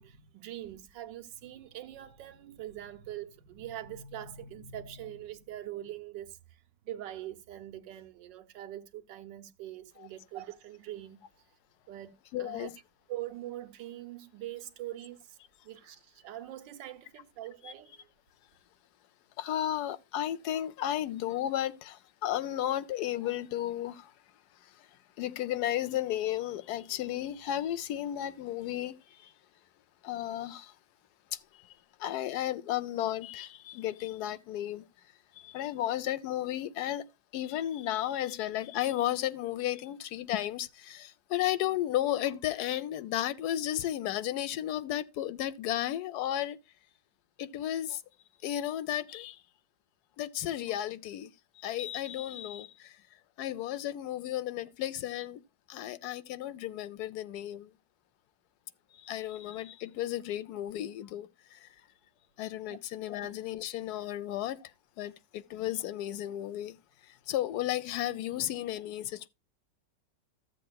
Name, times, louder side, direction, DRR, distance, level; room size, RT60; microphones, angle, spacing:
voice 1, 0.0-11.2 11.9-12.7 13.1-15.4 15.6-18.1 62.7-62.8 63.2-63.3, right 12 dB, 80° right, 1.5 m, -43 dB
voice 2, 12.3-12.7 17.6-17.7 19.4-24.1 24.6-24.9 25.2-29.3 30.0-30.7 31.3-34.8 35.3-37.1 37.3-46.6 47.4-48.0 48.4-49.4 50.2-51.3 51.6-53.0 53.4-55.4 55.7-57.7 58.9-61.7 62.4-64.7 65.0-66.8 67.0-69.3, left 12 dB, 70° left, 1.1 m, -34 dB
13.5 x 7.7 x 2.3 m
omnidirectional pair, 1.9 m